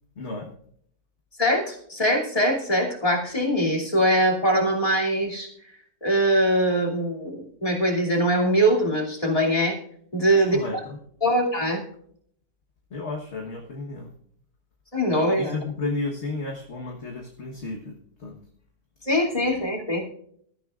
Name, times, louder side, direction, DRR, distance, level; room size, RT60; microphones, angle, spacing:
voice 1, 0.2-0.5 10.3-11.0 12.9-14.1 15.4-18.4, left 3 dB, 45° left, 0 dB, 1.5 m, -33 dB
voice 2, 1.4-5.5 6.0-9.8 10.1-10.8 11.2-11.8 14.9-15.5 19.0-20.0, equal, 20° left, -1 dB, 2.8 m, -22 dB
22.0 x 13.0 x 2.5 m, 0.65 s
omnidirectional pair, 1.8 m